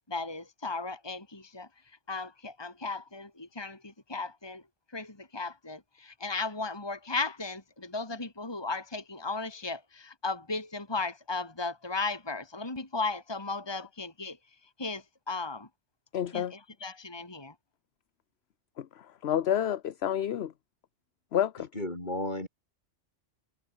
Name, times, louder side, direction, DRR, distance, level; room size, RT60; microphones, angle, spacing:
voice 1, 0.1-1.7 2.1-4.6 4.9-14.4 14.8-15.7 16.3-17.5, left 3 dB, 20° left, 2.4 m, -36 dB
voice 2, 16.1-16.5 18.8-20.5 21.3-21.7, left 10 dB, 60° left, 1.0 m, -29 dB
voice 3, 21.7-22.5, left 1 dB, 40° left, 5.3 m, -33 dB
omnidirectional pair, 1.3 m